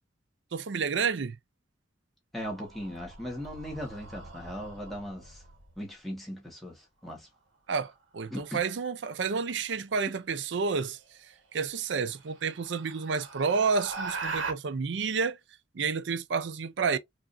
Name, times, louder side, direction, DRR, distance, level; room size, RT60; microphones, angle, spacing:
voice 1, 0.5-1.4 7.7-11.0 11.5-15.4 15.7-17.0, right 5 dB, 70° right, 0.5 m, -30 dB
voice 2, 2.3-5.4 5.8-7.3 8.3-8.6, equal, ahead, 1.4 m, -38 dB
sound 1, 2.3-5.8 8.2-8.6 10.7-10.8 11.3-11.4 11.9-14.5, right 4 dB, 90° right, 1.4 m, -41 dB
4.8 x 2.6 x 2.5 m
head